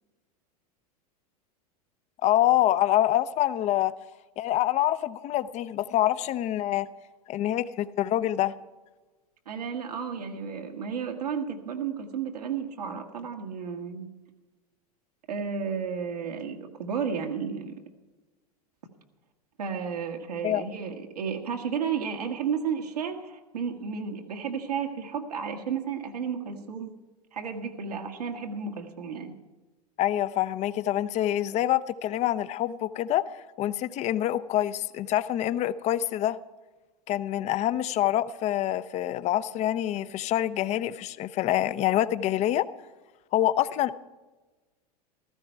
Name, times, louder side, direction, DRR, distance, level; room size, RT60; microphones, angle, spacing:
voice 1, 2.2-3.9 4.4-6.9 7.3-8.5 20.4-20.6 30.0-33.2 33.6-36.4 37.1-42.6 43.3-43.9, left 13 dB, 35° left, 16 dB, 0.6 m, -26 dB
voice 2, 9.5-14.1 15.3-17.8 19.6-26.9 27.3-29.3, right 6 dB, 75° right, 2 dB, 1.8 m, -32 dB
15.5 x 14.0 x 4.4 m, 1.2 s
figure-of-eight pair, 90°, 20 cm